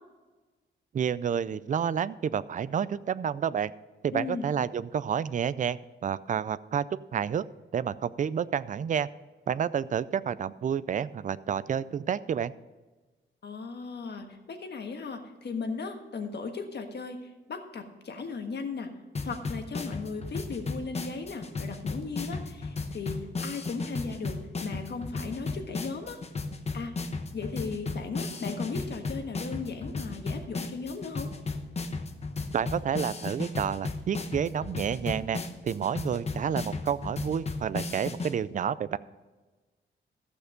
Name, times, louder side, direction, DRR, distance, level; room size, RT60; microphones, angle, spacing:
voice 1, 0.9-3.7 4.0-6.9 7.1-7.4 7.7-9.1 9.5-12.5 32.5-39.0, right 8 dB, 40° right, 16 dB, 0.4 m, -30 dB
voice 2, 4.1-4.5 13.4-18.9 19.2-26.2 26.7-26.9 27.3-31.3, left 4 dB, 55° left, 5 dB, 1.4 m, -37 dB
sound 1, 19.1-38.3, left 3 dB, 30° left, 0.9 m, -35 dB
14.0 x 6.6 x 5.1 m, 1.3 s
wide cardioid pair, 140°, 20 cm